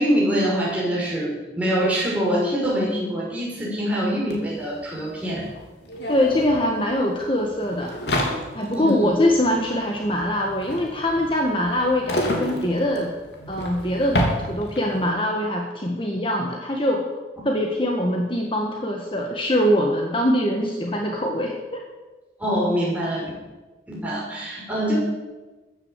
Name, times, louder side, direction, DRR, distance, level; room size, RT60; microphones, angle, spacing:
voice 1, 0.0-5.4 8.7-9.1 22.4-23.3 23.9-25.0, equal, 10° right, -5 dB, 6.1 m, -24 dB
sound 1, 4.3-4.4 4.6-15.0, equal, 70° left, 3.3 m, -30 dB
voice 2, 6.1-7.9 8.5-13.1 13.5-14.2 14.5-17.0 17.4-21.8, left 1 dB, 30° left, 1 dB, 1.5 m, -23 dB
15.0 x 9.9 x 8.2 m, 1.2 s
head